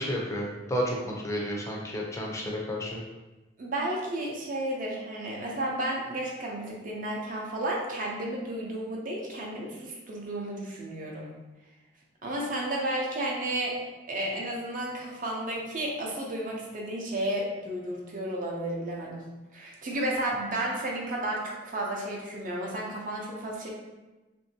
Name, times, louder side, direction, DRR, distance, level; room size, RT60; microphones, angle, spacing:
voice 1, 0.0-3.0, equal, 15° left, -2 dB, 0.5 m, -31 dB
voice 2, 3.6-11.3 12.2-13.8 14.1-19.3 19.5-23.7, right 1 dB, 45° right, -2 dB, 0.6 m, -32 dB
3.0 x 2.6 x 2.7 m, 1.1 s
head